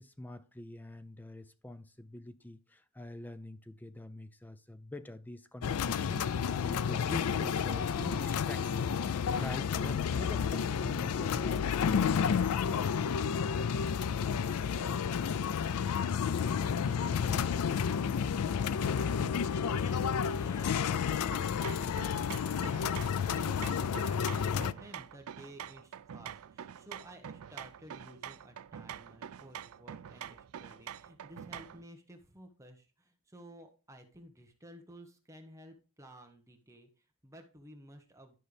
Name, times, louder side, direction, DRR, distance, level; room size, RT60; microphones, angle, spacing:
voice 1, 0.0-11.6, left 1 dB, 10° left, 0.5 m, -45 dB
sound 1, 5.6-24.7, left 7 dB, 90° left, 0.4 m, -31 dB
voice 2, 12.6-14.1 14.6-15.8 16.2-38.4, equal, 15° right, 1.1 m, -54 dB
sound 2, 21.3-31.9, right 9 dB, 75° right, 0.4 m, -46 dB
12.0 x 5.4 x 3.4 m
head